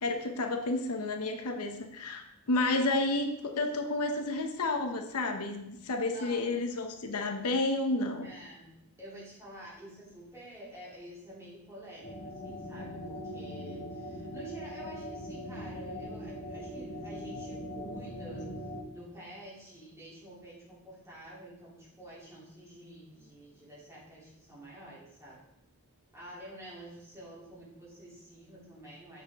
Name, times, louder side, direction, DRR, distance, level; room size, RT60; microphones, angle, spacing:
voice 1, 0.0-8.3, left 2 dB, 80° left, 5 dB, 0.8 m, -31 dB
voice 2, 6.1-6.4 8.2-8.7 9.0-18.5 18.9-25.4 26.1-29.2, right 1 dB, 15° right, -7 dB, 3.1 m, -49 dB
sound 1, 12.0-18.8, equal, 45° left, 1.4 m, -41 dB
7.3 x 6.3 x 3.5 m, 0.84 s
head